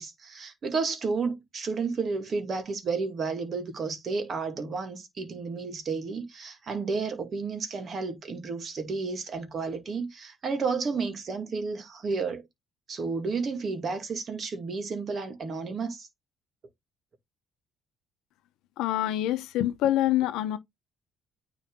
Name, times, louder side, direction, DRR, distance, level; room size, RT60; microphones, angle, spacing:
voice 1, 0.0-12.4 12.9-16.1, right 4 dB, 45° right, 2.0 m, -32 dB
voice 2, 18.8-20.6, left 13 dB, 85° left, 0.8 m, -26 dB
9.2 x 3.3 x 3.6 m
cardioid pair, 105°, 0 cm